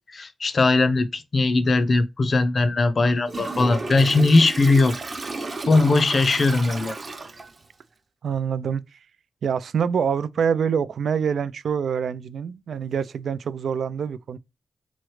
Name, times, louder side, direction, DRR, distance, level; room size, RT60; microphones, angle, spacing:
voice 1, 0.1-4.9 5.3-6.9, left 3 dB, 55° left, 0.6 m, -20 dB
Toilet flush, 3.3-7.6, right 3 dB, 45° right, 0.8 m, -33 dB
voice 2, 8.2-9.0 9.4-14.4, right 7 dB, 85° right, 0.3 m, -25 dB
3.7 x 3.1 x 3.1 m
cardioid pair, 70°, 0 cm